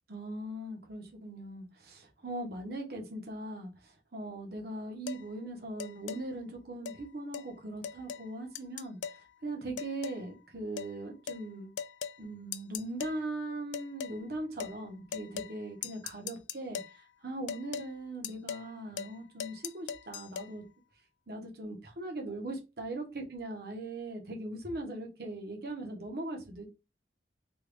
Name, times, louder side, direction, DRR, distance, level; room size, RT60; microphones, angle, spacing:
voice 1, 0.1-9.0 9.4-11.7 12.2-20.6 21.3-26.7, right 1 dB, 60° right, 1.0 m, -40 dB
sound 1, 5.1-5.2 5.8-6.2 6.8-7.0 7.3-7.5 7.8-8.3 8.5-9.2 9.8-10.2 10.8-10.9 11.3-11.4 11.8-12.2 12.5-13.2 13.7-14.2 14.6-14.8 15.1-15.6 15.8-17.0 17.5-17.9 18.2-18.7 19.0-19.1 19.4-20.5, left 7 dB, 90° left, 0.3 m, -39 dB
3.3 x 2.4 x 3.3 m
head